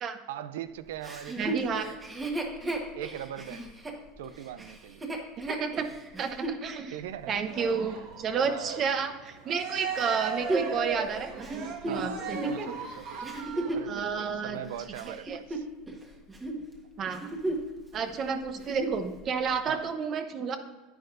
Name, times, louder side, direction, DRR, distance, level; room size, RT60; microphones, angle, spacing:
voice 1, 0.3-2.0 3.0-3.7 4.2-5.0 6.9-7.4 8.4-8.8 11.9-13.3 13.7-15.7 19.7-19.9, right 10 dB, 90° right, 14 dB, 0.5 m, -40 dB
Chuckle chortle, 1.0-6.6 7.2-7.3 10.0-13.9 14.6-16.0 16.3-16.6 17.0-17.8 18.1-18.2 18.6-19.0 19.7-19.8, right 2 dB, 15° right, 1.3 m, -34 dB
voice 2, 1.4-1.9 5.5-5.9 6.2-7.0 7.3-12.7 13.9-14.6 15.1-15.4 17.0-17.4 17.9-20.6, right 6 dB, 40° right, 8 dB, 0.8 m, -31 dB
Cheering, 7.5-13.9, right 5 dB, 60° right, 1.5 m, -38 dB
10.5 x 8.7 x 2.6 m, 1.2 s
supercardioid pair, 125°, 0 cm